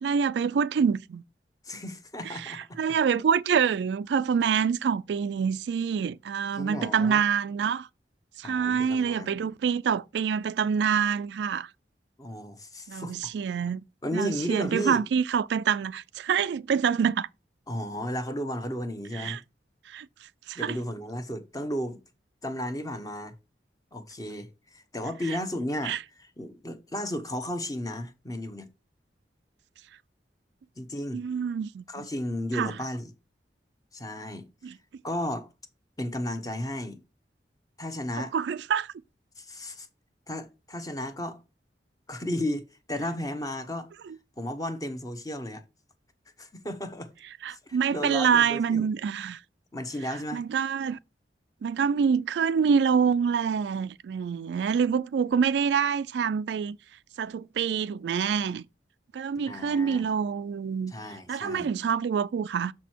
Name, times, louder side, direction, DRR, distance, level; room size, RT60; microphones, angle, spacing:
voice 1, 0.0-1.2 2.3-7.9 8.4-11.7 12.9-13.8 14.1-17.3 19.1-19.4 19.9-20.1 20.5-20.8 25.8-26.0 31.1-31.8 32.5-32.7 34.6-34.7 38.2-38.9 47.4-49.4 50.3-51.0 51.6-56.8 57.2-58.6 59.1-60.9 61.3-62.7, right 6 dB, 75° right, 0.3 m, -26 dB
voice 2, 1.6-2.8 6.5-7.2 8.4-9.3 12.2-13.2 14.0-15.0 17.7-19.4 20.5-22.0 22.4-23.3 23.9-28.7 30.8-31.2 31.9-33.1 33.9-34.5 35.0-35.5 36.0-37.0 37.8-38.3 39.4-39.9 40.3-41.4 42.1-43.9 44.4-45.6 46.4-47.1 47.5-48.9 49.7-50.4 59.5-60.1 60.9-61.7, left 1 dB, 20° left, 0.9 m, -34 dB
6.4 x 6.0 x 4.5 m
head